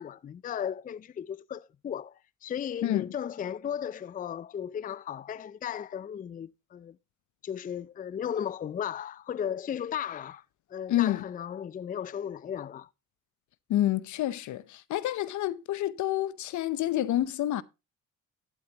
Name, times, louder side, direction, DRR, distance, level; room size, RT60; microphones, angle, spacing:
voice 1, 0.0-7.0 7.4-10.4 10.7-12.9, left 9 dB, 30° left, 0.4 m, -35 dB
voice 2, 10.9-11.2 13.7-17.6, left 13 dB, 75° left, 0.7 m, -28 dB
11.5 x 8.5 x 2.9 m
cardioid pair, 90°, 30 cm